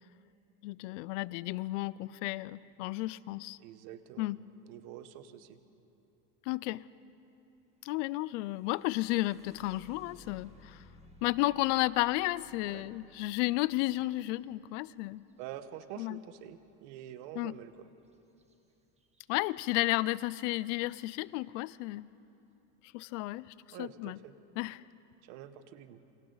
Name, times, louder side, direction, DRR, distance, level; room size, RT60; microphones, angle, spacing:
voice 1, 0.6-3.6 4.2-4.4 6.5-6.8 7.8-10.8 11.2-15.2 16.0-16.2 17.4-17.6 19.3-22.1 22.9-24.2 24.6-24.8, left 19 dB, 80° left, 20 dB, 0.6 m, -33 dB
voice 2, 3.6-4.3 4.7-5.6 12.7-12.9 15.4-17.9 23.7-24.4 25.2-26.0, right 11 dB, 75° right, 11 dB, 1.3 m, -46 dB
sound 1, 8.5-16.3 18.4-18.5 19.0-19.5 20.1-20.2 20.7-21.1, left 1 dB, 20° right, 1.8 m, -60 dB
28.0 x 26.5 x 4.0 m, 3.0 s
supercardioid pair, 120°, 36 cm